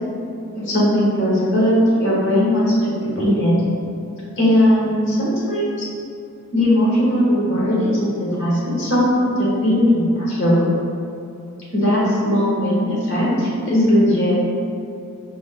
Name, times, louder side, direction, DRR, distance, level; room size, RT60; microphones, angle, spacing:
voice 1, 0.5-3.5 4.4-5.8 6.5-10.6 11.7-14.4, equal, 55° left, -7 dB, 1.3 m, -18 dB
5.1 x 3.6 x 2.2 m, 2.5 s
head